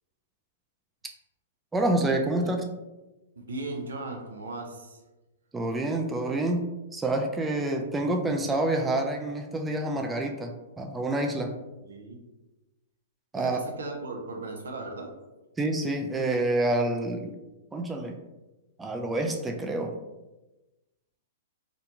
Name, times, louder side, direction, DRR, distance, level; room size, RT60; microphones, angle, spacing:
voice 1, 1.7-2.6 5.5-6.6 6.9-11.5 13.3-13.6 15.6-17.3 17.7-18.2 18.8-20.0, right 2 dB, 10° right, 3 dB, 0.3 m, -27 dB
voice 2, 3.4-5.0 11.8-12.2 13.3-15.1, right 2 dB, 80° right, 2 dB, 0.5 m, -37 dB
2.5 x 2.1 x 2.8 m, 1.0 s
hypercardioid pair, 125°, 0 cm